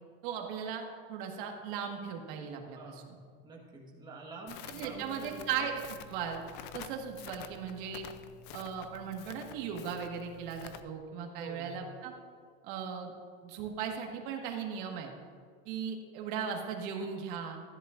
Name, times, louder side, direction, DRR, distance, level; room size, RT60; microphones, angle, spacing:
voice 1, 0.2-3.2 4.7-6.4 6.7-8.1 8.5-12.1 12.6-13.1 13.4-15.1 15.6-17.6, right 7 dB, 60° right, 2 dB, 1.6 m, -38 dB
voice 2, 2.7-3.1 3.4-5.7 11.4-11.8, right 3 dB, 15° right, -1 dB, 1.5 m, -47 dB
Crackle, 4.5-10.8, left 7 dB, 35° left, 0.5 m, -49 dB
14.5 x 10.5 x 2.5 m, 2.1 s
supercardioid pair, 160°, 30 cm